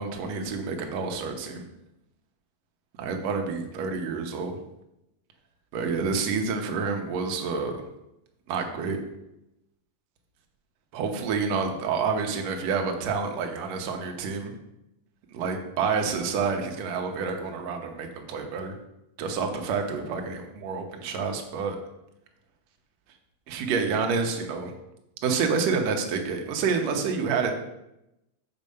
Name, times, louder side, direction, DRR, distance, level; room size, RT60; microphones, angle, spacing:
voice 1, 0.0-1.7 3.0-4.6 5.7-7.8 8.5-9.0 10.9-14.5 15.3-18.7 19.2-21.8 23.5-24.7 25.2-27.5, right 5 dB, 65° right, 4 dB, 1.8 m, -28 dB
6.9 x 5.5 x 6.7 m, 0.87 s
omnidirectional pair, 4.2 m